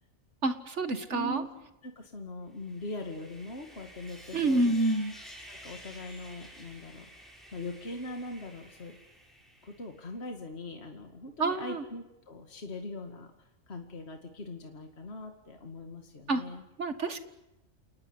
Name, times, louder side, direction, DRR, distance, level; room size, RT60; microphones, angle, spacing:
voice 1, 0.4-1.4 4.3-5.1 11.4-11.8 16.3-16.4 16.8-17.2, right 2 dB, 60° right, 9 dB, 2.1 m, -28 dB
voice 2, 1.1-1.5 1.8-4.7 5.5-7.1 7.5-9.0 9.6-13.3 13.7-16.6, left 2 dB, 50° left, 4 dB, 2.5 m, -41 dB
Sawing, 2.5-10.0, equal, ahead, 6.3 m, -51 dB
29.5 x 19.0 x 9.8 m, 0.96 s
omnidirectional pair, 1.4 m